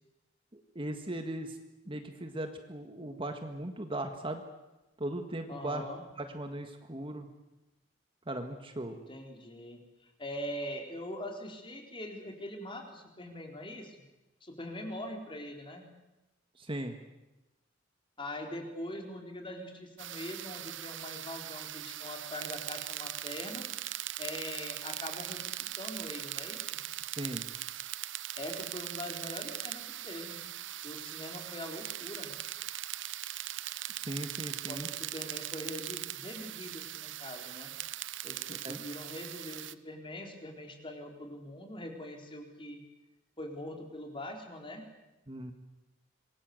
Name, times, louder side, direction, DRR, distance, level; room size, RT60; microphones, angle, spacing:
voice 1, 0.5-1.6 1.9-4.4 5.0-5.9 6.2-7.3 8.3-9.0 16.6-17.0 27.2-27.4 34.0-34.9 38.5-38.8 45.3-45.5, right 1 dB, 25° right, 6 dB, 1.8 m, -38 dB
voice 2, 5.5-6.0 8.9-14.0 14.4-15.8 18.2-23.6 24.2-26.8 28.4-30.4 30.8-32.3 34.7-37.7 38.2-42.8 43.4-44.8, left 1 dB, 25° left, 3 dB, 4.2 m, -42 dB
sound 1, 20.0-39.7, right 13 dB, 70° right, 0.8 m, -40 dB
26.5 x 22.0 x 8.0 m, 1.0 s
head